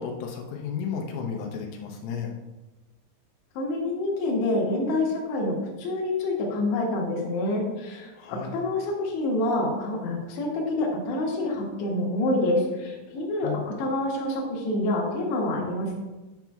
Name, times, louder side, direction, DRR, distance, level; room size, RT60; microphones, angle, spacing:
voice 1, 0.0-2.3 8.2-8.5 13.4-13.6, left 6 dB, 90° left, 0 dB, 3.4 m, -33 dB
voice 2, 3.6-15.9, left 2 dB, 70° left, -2 dB, 3.1 m, -27 dB
10.0 x 5.9 x 2.3 m, 1.1 s
omnidirectional pair, 5.7 m